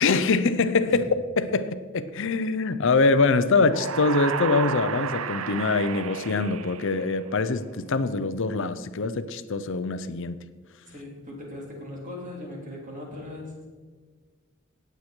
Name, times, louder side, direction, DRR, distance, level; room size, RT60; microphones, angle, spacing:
voice 1, 0.0-10.4, left 3 dB, 65° left, 12 dB, 0.7 m, -24 dB
sound 1, 3.6-7.5, right 7 dB, 90° right, 0.6 m, -32 dB
voice 2, 10.9-13.7, left 1 dB, 40° right, -2 dB, 3.8 m, -39 dB
18.0 x 8.1 x 4.5 m, 1.5 s
head